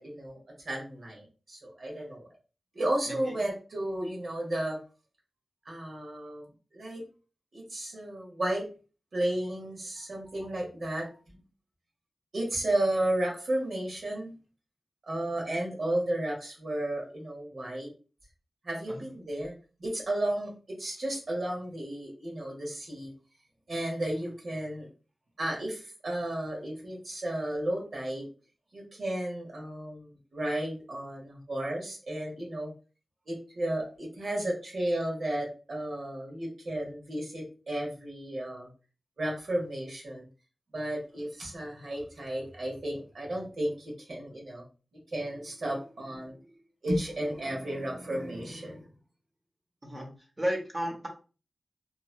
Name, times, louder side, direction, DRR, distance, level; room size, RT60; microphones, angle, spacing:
voice 1, 0.0-2.3 2.7-4.8 5.6-6.4 6.7-7.0 7.5-8.6 9.1-11.2 12.3-14.3 15.1-17.9 18.6-19.5 19.8-23.1 23.7-24.9 25.4-28.3 28.7-32.7 33.3-38.7 39.2-40.3 40.7-44.6 45.1-46.4 46.8-48.9, right 1 dB, 65° right, -2 dB, 1.2 m, -33 dB
voice 2, 50.4-51.1, equal, 20° right, 0 dB, 0.9 m, -33 dB
2.9 x 2.5 x 2.4 m, 0.35 s
wide cardioid pair, 110°, 0 cm